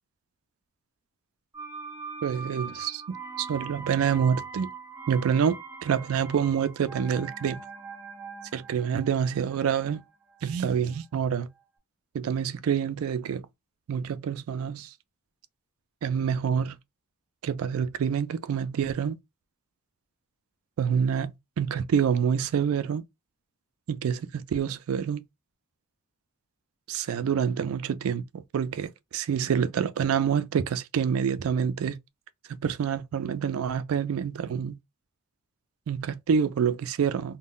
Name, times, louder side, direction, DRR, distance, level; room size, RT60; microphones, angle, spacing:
sound 1, 1.5-11.3 11.6-11.7, right 5 dB, 10° right, 0.4 m, -42 dB
voice 1, 2.2-3.0 3.4-4.7 5.1-5.6 5.8-7.6 8.5-10.0 10.4-11.5 12.1-13.5 13.9-14.9 16.0-16.8 17.4-19.2 20.8-23.0 23.9-25.2 26.9-32.0 32.6-34.8 35.9-37.4, right 7 dB, 85° right, 0.4 m, -27 dB
2.2 x 2.1 x 3.6 m
head